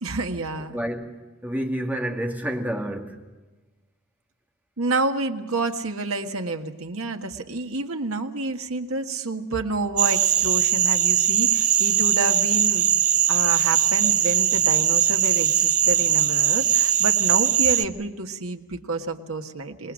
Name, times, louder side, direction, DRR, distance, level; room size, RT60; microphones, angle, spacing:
voice 1, 0.0-0.7 4.8-13.0 13.3-19.9, right 3 dB, 85° right, 1.6 m, -29 dB
voice 2, 0.6-3.2, right 1 dB, 10° right, 2.2 m, -29 dB
sound 1, 10.0-17.8, right 10 dB, 35° right, 0.7 m, -20 dB
26.0 x 20.5 x 6.4 m
head